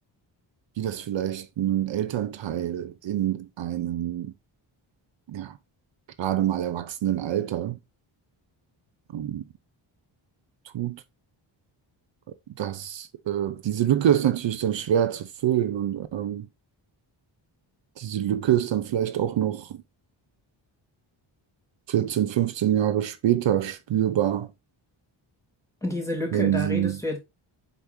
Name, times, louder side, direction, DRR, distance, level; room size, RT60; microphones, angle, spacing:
voice 1, 0.8-4.3 5.3-5.6 6.2-7.8 9.1-9.4 10.6-11.0 12.6-16.5 18.0-19.8 21.9-24.5 26.3-27.0, right 11 dB, 65° right, 0.8 m, -26 dB
voice 2, 25.8-27.2, left 1 dB, 5° left, 2.7 m, -29 dB
8.1 x 5.3 x 2.7 m
wide cardioid pair, 170°, 48 cm